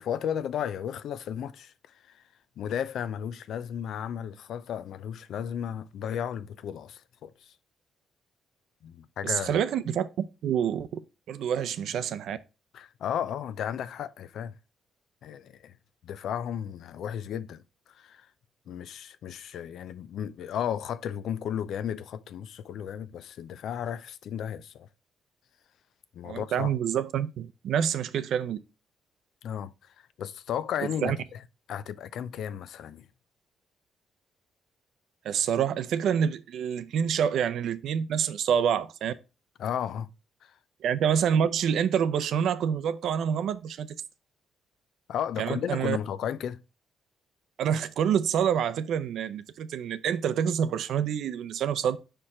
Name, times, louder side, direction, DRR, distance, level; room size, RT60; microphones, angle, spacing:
voice 1, 0.0-1.7 2.1-2.2 2.6-7.5 8.8-9.6 12.7-14.6 15.2-15.7 16.0-18.3 18.7-24.9 26.1-26.7 29.4-31.4 31.7-33.1 39.6-40.1 40.4-40.5 45.1-46.6, left 9 dB, 70° left, 0.4 m, -34 dB
voice 2, 9.2-11.0 11.3-12.4 26.2-28.6 31.0-31.2 35.2-39.1 40.8-43.9 45.4-46.0 47.6-52.0, right 8 dB, 75° right, 0.5 m, -27 dB
5.0 x 4.5 x 4.2 m
cardioid pair, 90°, 0 cm